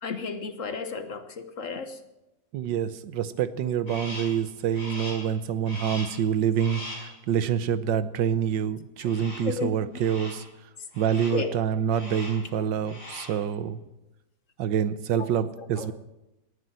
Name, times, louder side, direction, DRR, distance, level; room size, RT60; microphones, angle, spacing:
voice 1, 0.0-2.0 9.0-9.1 9.4-10.0 11.3-11.5 15.2-15.3 15.6-15.9, left 4 dB, 50° left, 10 dB, 1.3 m, -33 dB
voice 2, 2.5-10.4 11.0-13.8 14.6-15.9, right 8 dB, 85° right, 15 dB, 1.6 m, -27 dB
Crow, 3.9-4.4 4.7-5.3 5.6-6.2 6.6-7.1 9.0-9.6 9.9-10.5 10.9-11.5 11.9-12.5 12.8-13.4, left 1 dB, 65° left, 6.1 m, -40 dB
18.0 x 9.8 x 7.7 m, 0.92 s
omnidirectional pair, 1.9 m